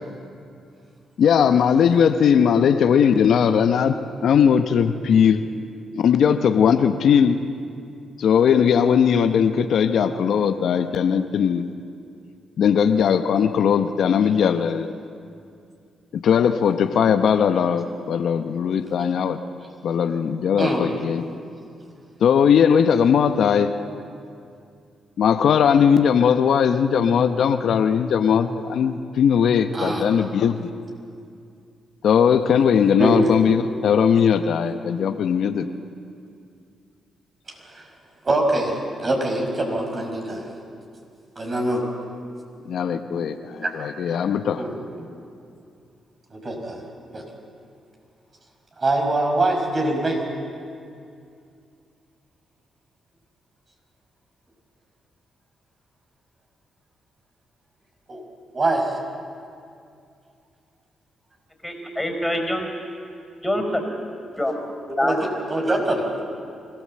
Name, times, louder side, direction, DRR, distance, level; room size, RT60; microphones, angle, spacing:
voice 1, 1.2-4.0 4.2-5.4 6.0-7.4 8.2-11.7 12.6-14.9 16.1-19.4 19.8-21.2 22.2-23.7 25.2-30.5 32.0-35.7 42.7-44.6, left 7 dB, 70° left, 9 dB, 0.8 m, -19 dB
voice 2, 20.6-20.9 29.7-30.0 33.0-33.4 37.5-37.9 38.2-40.5 41.4-41.8 43.6-43.8 44.6-44.9 46.3-46.8 47.1-47.3 48.8-50.2 58.1-58.2 58.5-59.0 65.0-66.0, right 1 dB, 40° right, 1 dB, 5.5 m, -24 dB
voice 3, 61.6-62.7 63.4-63.9 64.3-64.6 64.9-65.3, left 1 dB, 10° left, 4 dB, 4.6 m, -25 dB
25.0 x 15.0 x 7.6 m, 2.4 s
supercardioid pair, 55°, 0 cm